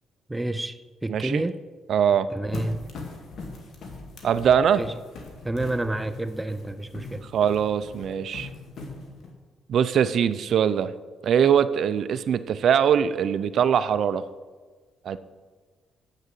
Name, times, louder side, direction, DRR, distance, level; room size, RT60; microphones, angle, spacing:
voice 1, 0.3-1.6 2.3-2.8 4.8-4.9 5.4-7.3, right 1 dB, 10° right, 0.5 m, -29 dB
voice 2, 1.1-1.4 1.9-2.3 4.2-4.8 7.3-8.5 9.7-10.9 11.2-14.2 15.0-15.2, right 8 dB, 65° right, 0.5 m, -22 dB
sound 1, 2.5-9.3, left 3 dB, 65° left, 2.1 m, -41 dB
8.4 x 6.6 x 7.5 m
cardioid pair, 90°, 0 cm